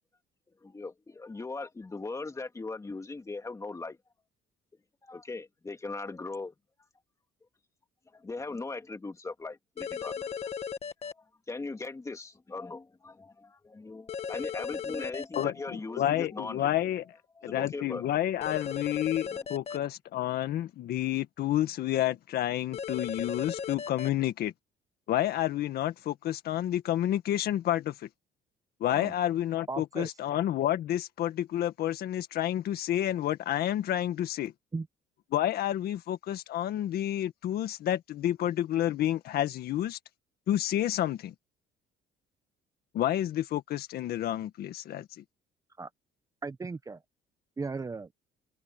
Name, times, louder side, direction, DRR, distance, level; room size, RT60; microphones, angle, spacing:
voice 1, 0.6-4.0 5.0-6.5 8.1-10.3 11.0-16.7 17.4-18.1 19.3-19.4, left 3 dB, 20° left, 2.4 m, -39 dB
sound 1, 9.8-11.1 14.1-15.4 18.4-19.8 22.7-24.1, left 6 dB, 40° left, 1.7 m, -36 dB
voice 2, 15.3-17.0 17.4-24.5 25.1-28.1 28.8-34.5 35.3-40.0 40.5-41.3 42.9-45.2, left 12 dB, 65° left, 1.8 m, -30 dB
voice 3, 29.7-30.1 34.7-34.9 45.8-45.9 46.4-47.0 47.6-48.1, right 4 dB, 20° right, 0.9 m, -36 dB
cardioid pair, 110°, 17 cm